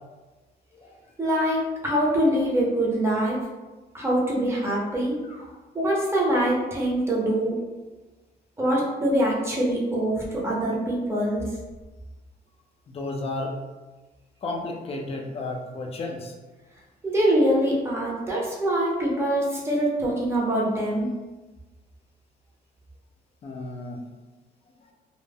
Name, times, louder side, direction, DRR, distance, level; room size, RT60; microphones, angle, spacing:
voice 1, 1.2-3.4 3.9-5.2 5.7-7.6 8.6-11.4 17.0-21.1, right 1 dB, 15° right, -4 dB, 0.6 m, -24 dB
voice 2, 12.9-13.6 14.4-16.3 23.4-24.0, left 2 dB, 35° left, 1 dB, 0.3 m, -33 dB
2.1 x 2.0 x 3.3 m, 1.2 s
cardioid pair, 145°, 17 cm